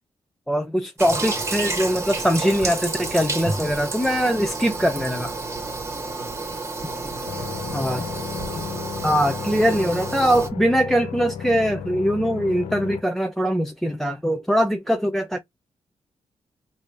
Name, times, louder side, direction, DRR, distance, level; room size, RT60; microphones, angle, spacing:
voice 1, 0.5-5.3 7.7-8.0 9.0-15.4, equal, 5° left, 0.4 m, -22 dB
Toilet flush, 1.0-10.5, right 3 dB, 25° right, 1.1 m, -30 dB
voice 2, 5.9-6.3 6.8-8.8 9.7-9.8, left 2 dB, 20° left, 1.2 m, -41 dB
sound 1, 7.3-13.0, left 7 dB, 80° left, 0.6 m, -34 dB
3.3 x 2.7 x 3.3 m
cardioid pair, 115°, 11 cm